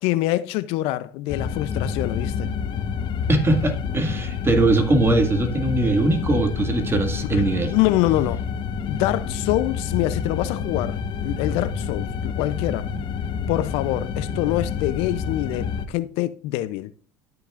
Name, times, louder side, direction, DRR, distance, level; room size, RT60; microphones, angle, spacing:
voice 1, 0.0-2.5 7.3-8.4 8.9-12.9 13.5-16.9, left 16 dB, 70° left, 0.5 m, -25 dB
sound 1, 1.3-15.8, left 6 dB, 50° left, 1.0 m, -28 dB
voice 2, 3.3-7.7, right 2 dB, 25° right, 1.9 m, -21 dB
12.5 x 5.9 x 2.5 m
hypercardioid pair, 80°, 10 cm